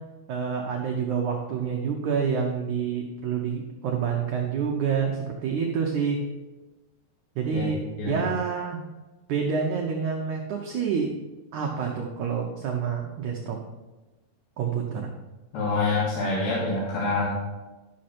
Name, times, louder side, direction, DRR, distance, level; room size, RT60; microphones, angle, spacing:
voice 1, 0.3-6.2 7.3-8.8 9.3-11.1 11.5-13.6 14.6-15.1, right 6 dB, 85° right, 0 dB, 1.7 m, -28 dB
voice 2, 15.5-17.3, left 3 dB, 65° left, -7 dB, 3.5 m, -26 dB
12.5 x 6.4 x 4.3 m, 1.1 s
omnidirectional pair, 4.7 m